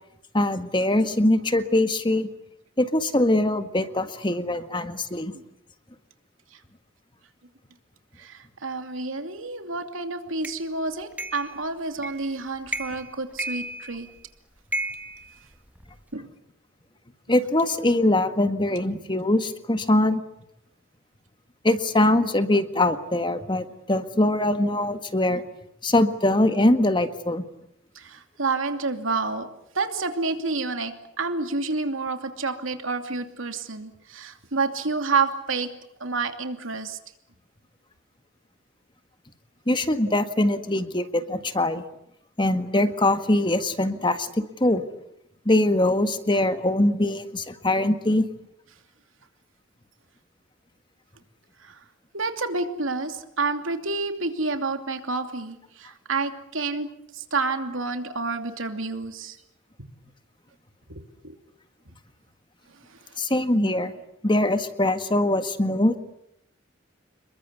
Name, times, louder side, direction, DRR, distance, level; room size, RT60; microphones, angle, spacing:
voice 1, 0.3-2.3 2.8-5.3 17.3-20.2 21.6-25.4 25.8-27.4 39.7-41.8 42.4-44.8 45.4-48.3 63.2-63.9 64.2-66.0, left 1 dB, 25° left, 9 dB, 1.7 m, -22 dB
voice 2, 8.2-14.1 16.1-16.3 27.9-29.5 29.7-35.7 36.0-37.0 51.6-51.7 52.1-56.9 57.2-59.4 61.2-61.3, right 4 dB, 85° right, 7 dB, 2.8 m, -29 dB
sound 1, 10.4-10.6 11.2-11.5 12.0-12.3 12.7-13.1 13.4-14.2 14.7-16.0, right 1 dB, 10° right, 1.6 m, -33 dB
28.0 x 22.5 x 8.3 m, 0.76 s
head